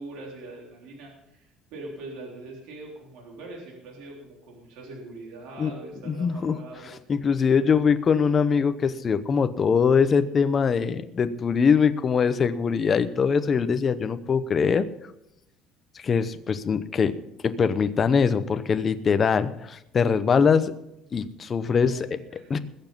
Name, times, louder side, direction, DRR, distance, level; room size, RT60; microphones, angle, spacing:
voice 1, 0.0-7.1 21.7-22.5, right 2 dB, 75° right, -2 dB, 3.7 m, -43 dB
voice 2, 6.1-6.6 7.1-14.9 16.0-17.1 17.4-20.7 21.1-22.1 22.5-22.6, left 6 dB, 25° left, 11 dB, 0.8 m, -22 dB
20.5 x 7.2 x 5.4 m, 0.84 s
cardioid pair, 155°, 0 cm